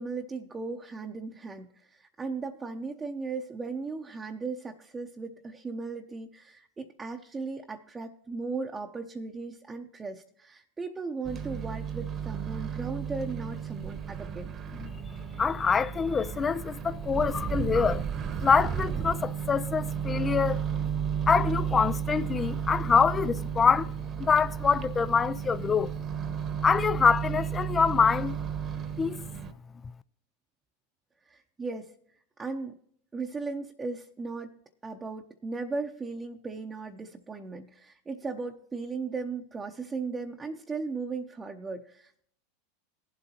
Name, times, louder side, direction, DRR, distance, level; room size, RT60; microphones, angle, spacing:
voice 1, 0.0-14.5 31.3-31.9 32.4-32.8 33.1-34.5 34.8-42.3, right 4 dB, 20° right, 0.8 m, -37 dB
Microwave oven, 11.2-29.5, right 8 dB, 35° right, 1.1 m, -33 dB
voice 2, 15.4-18.1 18.4-20.6 21.3-23.9 24.2-25.9 26.6-28.4 29.0-29.3, left 6 dB, 25° left, 0.4 m, -25 dB
19.0 x 7.9 x 2.9 m
hypercardioid pair, 90°, 0 cm